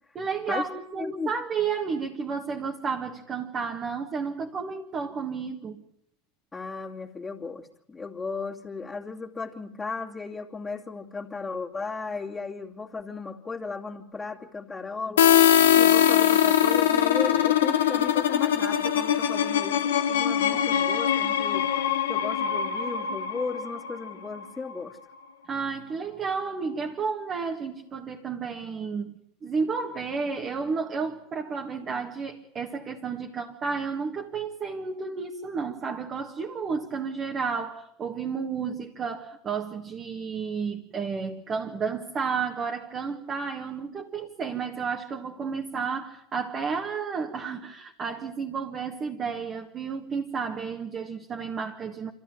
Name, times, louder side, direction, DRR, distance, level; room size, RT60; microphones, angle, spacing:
voice 1, 0.2-5.8 20.5-20.6 25.5-52.1, right 5 dB, 35° right, 2 dB, 1.8 m, -32 dB
voice 2, 1.0-1.3 6.5-15.3 15.7-21.7 22.1-25.0, left 4 dB, 15° left, -3 dB, 2.6 m, -35 dB
sound 1, 15.2-24.8, left 10 dB, 80° left, 1.8 m, -22 dB
26.0 x 14.5 x 9.3 m, 0.76 s
hypercardioid pair, 90°, 0 cm